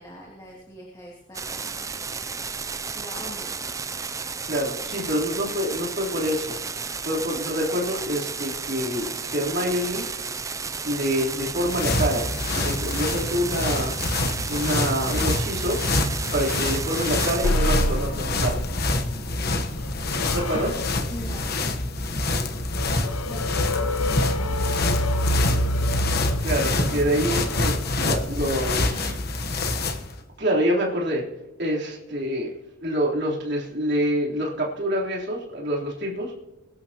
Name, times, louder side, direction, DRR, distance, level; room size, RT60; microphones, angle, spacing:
voice 1, 0.0-1.9 2.9-3.8 21.1-21.5 23.2-25.1, equal, 15° left, -4 dB, 2.5 m, -42 dB
sound 1, 1.3-17.5, right 5 dB, 15° right, 0.4 m, -33 dB
voice 2, 4.4-6.5 7.0-10.0 10.8-13.9 14.5-16.1 16.3-18.7 20.2-20.9 26.4-29.5 30.4-31.2 31.6-32.5 32.8-36.3, equal, 50° right, -3 dB, 3.8 m, -26 dB
sound 2, 11.4-30.1, left 2 dB, 45° left, 1.2 m, -26 dB
sound 3, 17.4-28.8, left 1 dB, 90° left, 0.8 m, -28 dB
22.5 x 12.0 x 3.0 m, 1.0 s
head